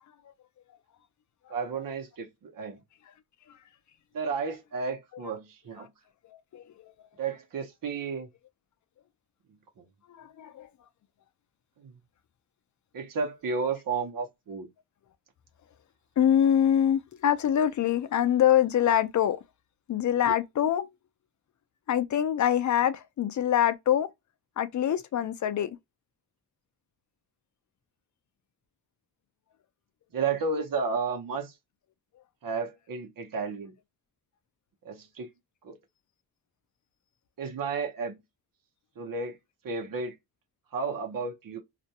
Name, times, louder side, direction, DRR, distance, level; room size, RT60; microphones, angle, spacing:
voice 1, 1.5-2.8 4.1-5.9 7.2-8.3 9.8-9.9 11.8-11.9 12.9-14.7 30.1-31.6 32.4-33.7 34.8-35.3 35.6-35.8 37.4-38.2 39.0-39.4 39.6-40.2 40.7-41.6, right 5 dB, 55° right, 0.8 m, -32 dB
voice 2, 10.2-10.7 16.2-19.4 19.9-20.9 21.9-24.1 24.6-25.7, left 10 dB, 50° left, 0.5 m, -24 dB
2.5 x 2.2 x 2.7 m
wide cardioid pair, 125°, 39 cm